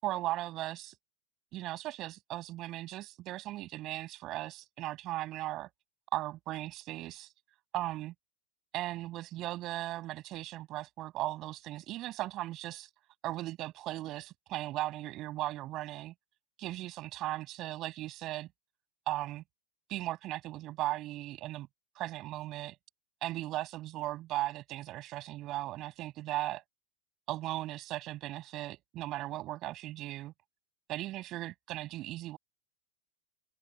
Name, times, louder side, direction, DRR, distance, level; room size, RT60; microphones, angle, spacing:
voice 1, 0.0-0.9 1.5-5.7 6.1-7.3 7.7-8.1 8.7-12.9 13.2-16.1 16.6-18.5 19.1-19.4 19.9-21.7 21.9-22.8 23.2-26.6 27.3-30.3 30.9-32.4, right 16 dB, 35° right, 7.9 m, -37 dB
figure-of-eight pair, 90°, 0 cm